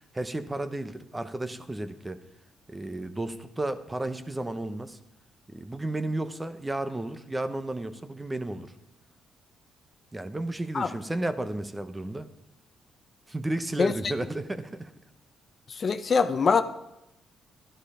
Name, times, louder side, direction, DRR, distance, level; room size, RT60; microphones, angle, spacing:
voice 1, 0.0-2.2 2.7-5.0 5.5-8.7 10.1-12.3 13.3-14.9, right 1 dB, 15° right, 1.0 m, -33 dB
voice 2, 15.7-16.6, left 5 dB, 45° left, 0.8 m, -23 dB
12.5 x 11.5 x 5.0 m
cardioid pair, 90°, 0 cm